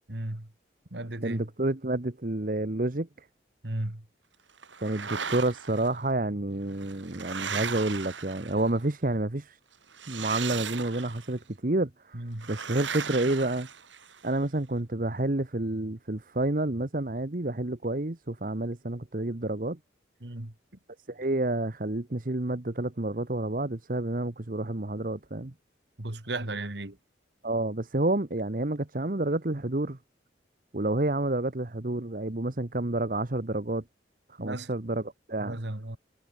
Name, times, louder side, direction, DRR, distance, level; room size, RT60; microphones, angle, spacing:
voice 1, 0.1-0.5 0.9-1.5 3.6-4.0 12.1-12.5 20.2-20.5 26.0-27.0 34.4-34.7 35.4-36.0, right 1 dB, 65° right, 2.3 m, -35 dB
voice 2, 1.2-3.3 4.8-9.6 10.1-13.7 14.2-19.8 21.1-25.5 27.4-30.0 30.7-33.8 34.3-35.6, right 2 dB, 45° right, 1.2 m, -29 dB
sound 1, 4.6-5.9 6.7-8.8 9.9-11.3 12.4-14.3, right 6 dB, 90° right, 3.7 m, -37 dB
head